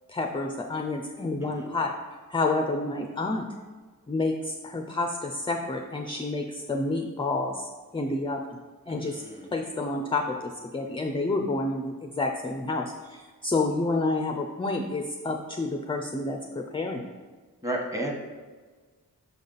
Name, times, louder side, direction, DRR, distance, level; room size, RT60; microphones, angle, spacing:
voice 1, 0.1-2.0 2.3-3.5 4.1-8.6 8.9-9.2 9.5-17.1, left 2 dB, 15° left, 3 dB, 0.4 m, -29 dB
voice 2, 8.9-9.5 17.6-18.1, right 1 dB, 10° right, 0 dB, 1.1 m, -33 dB
5.7 x 5.5 x 3.9 m, 1.4 s
wide cardioid pair, 130°, 35 cm